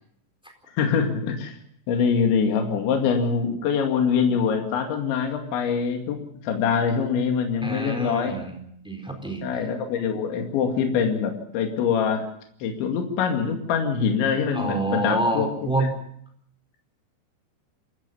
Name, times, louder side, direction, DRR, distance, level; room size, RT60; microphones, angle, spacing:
voice 1, 0.7-1.6 1.9-6.2 6.4-8.4 9.4-12.3 12.6-15.5, left 6 dB, 70° left, 4 dB, 4.5 m, -24 dB
voice 2, 7.6-8.6 8.8-9.4 14.5-15.9, right 2 dB, ahead, 3 dB, 3.3 m, -27 dB
27.0 x 15.0 x 7.0 m, 0.67 s
omnidirectional pair, 5.7 m